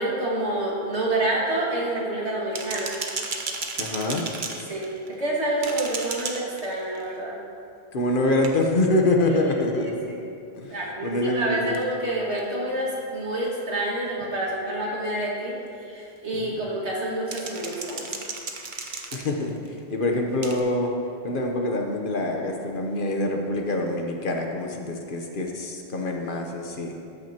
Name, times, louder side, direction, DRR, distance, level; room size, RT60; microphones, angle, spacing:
voice 1, 0.0-2.9 4.7-7.3 9.3-10.2 10.7-18.1, right 1 dB, 90° right, -5 dB, 2.3 m, -28 dB
sound 1, 2.5-5.3 5.6-7.1 8.4-8.8 11.7-11.8 12.4-12.5 14.2-14.3 17.3-19.7 20.4-20.6, right 4 dB, 50° right, 0.9 m, -34 dB
voice 2, 3.8-4.2 7.9-10.2 10.6-10.7 11.0-11.8 16.3-16.4 19.1-19.6 19.9-20.9 21.2-26.9, left 2 dB, 55° left, 2 dB, 1.1 m, -25 dB
13.5 x 9.2 x 2.9 m, 2.5 s
omnidirectional pair, 1.1 m